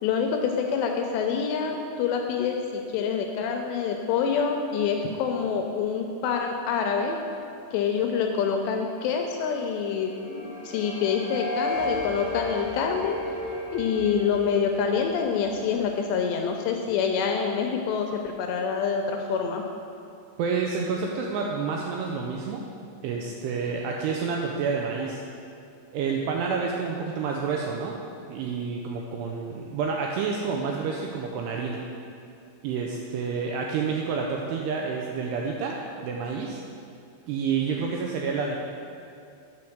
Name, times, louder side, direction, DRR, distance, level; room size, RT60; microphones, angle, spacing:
voice 1, 0.0-7.2 7.7-13.2 13.7-19.6, left 6 dB, 85° left, 3 dB, 2.5 m, -26 dB
sound 1, 9.5-16.5, left 2 dB, 55° right, 3.5 m, -35 dB
voice 2, 20.4-22.6 23.0-25.2 25.9-27.9 28.3-31.8 32.6-35.8 36.0-36.6 37.3-38.6, right 5 dB, 85° right, 0 dB, 2.4 m, -29 dB
8.6 x 4.5 x 6.5 m, 2.5 s
omnidirectional pair, 5.3 m